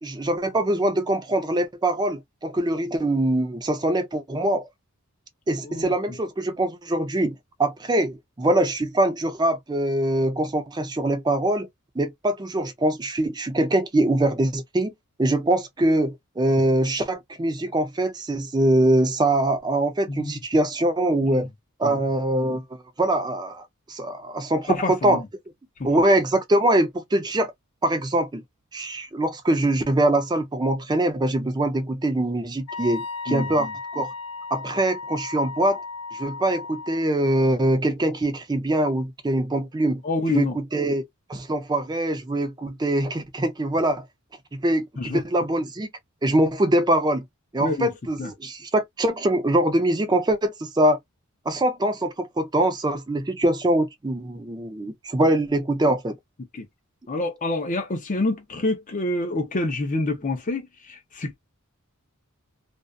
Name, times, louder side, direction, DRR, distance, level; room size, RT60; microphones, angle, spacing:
voice 1, 0.0-4.7 5.5-11.7 12.0-14.9 15.2-21.5 21.8-22.6 23.0-25.2 25.8-27.5 27.8-28.4 28.7-34.1 34.5-35.8 36.1-40.0 40.3-44.0 44.5-45.9 46.2-47.2 47.5-51.0 51.5-56.2, right 1 dB, 20° right, 0.4 m, -23 dB
voice 2, 24.7-25.2 33.3-33.7 40.0-40.6 45.0-45.2 47.6-47.9 48.2-48.3 56.5-56.6 57.1-61.3, left 2 dB, 35° left, 0.5 m, -27 dB
Wind instrument woodwind instrument, 32.7-37.1, left 4 dB, 80° left, 0.5 m, -35 dB
2.5 x 2.3 x 2.3 m
head